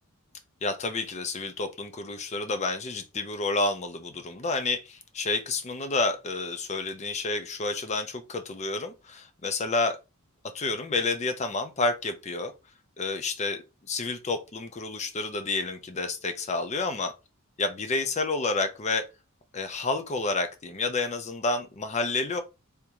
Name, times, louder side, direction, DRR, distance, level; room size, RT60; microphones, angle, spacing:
voice 1, 0.6-10.0 10.5-12.5 13.0-13.6 13.9-17.1 17.6-19.1 19.5-22.4, left 3 dB, 35° left, 0.6 m, -29 dB
3.5 x 2.6 x 2.9 m
head